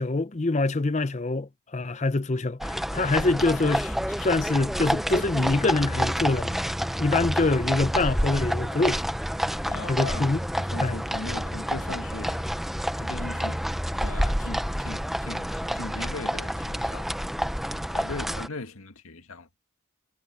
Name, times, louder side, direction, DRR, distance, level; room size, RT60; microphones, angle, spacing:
voice 1, 0.0-6.7 7.0-9.0 9.9-10.4 10.8-11.0, left 2 dB, 30° left, 0.6 m, -25 dB
sound 1, 2.6-18.5, equal, ahead, 0.8 m, -29 dB
voice 2, 9.7-12.5 13.0-13.6 13.9-17.1 17.5-19.5, left 3 dB, 80° left, 1.8 m, -39 dB
head